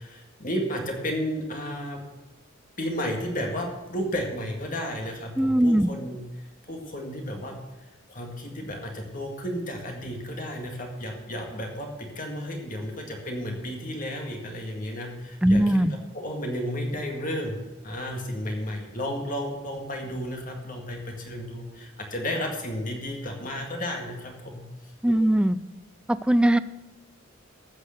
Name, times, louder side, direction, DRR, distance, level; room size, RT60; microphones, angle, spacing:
voice 1, 0.0-2.0 2.8-6.2 6.7-7.6 8.1-15.6 16.1-17.6 17.8-24.6, equal, 40° left, 2 dB, 1.9 m, -32 dB
voice 2, 5.4-5.9 15.4-15.9 25.0-25.6 26.1-26.6, right 1 dB, 5° right, 14 dB, 0.3 m, -20 dB
14.5 x 6.6 x 6.5 m, 1.0 s
head